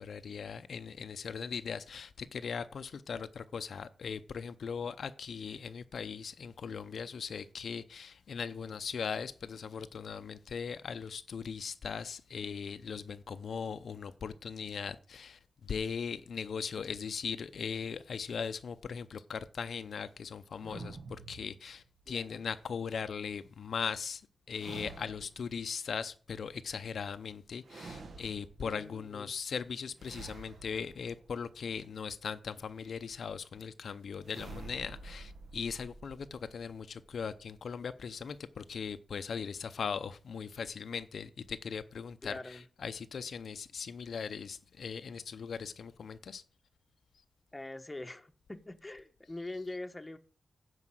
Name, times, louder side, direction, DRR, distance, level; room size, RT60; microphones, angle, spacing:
voice 1, 0.0-24.2 24.5-46.4, left 6 dB, 70° left, 0.6 m, -39 dB
sound 1, 20.6-22.1 24.5-25.6 27.6-28.8 30.0-31.8 34.2-37.8, right 3 dB, 65° right, 1.1 m, -49 dB
voice 2, 22.1-22.4 28.6-29.3 42.2-42.6 47.5-50.2, left 2 dB, 15° left, 1.0 m, -44 dB
9.7 x 4.9 x 7.6 m
wide cardioid pair, 110°, 0 cm